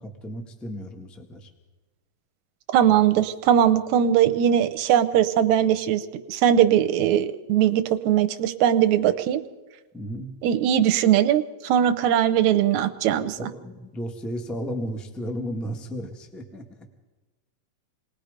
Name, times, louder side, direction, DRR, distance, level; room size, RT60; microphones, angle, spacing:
voice 1, 0.0-1.5 9.9-10.3 13.4-16.9, equal, ahead, 4 dB, 0.7 m, -34 dB
voice 2, 2.7-6.0 6.3-9.4 10.4-13.4, right 10 dB, 70° right, 9 dB, 2.0 m, -20 dB
27.5 x 20.0 x 5.2 m, 1.2 s
omnidirectional pair, 3.9 m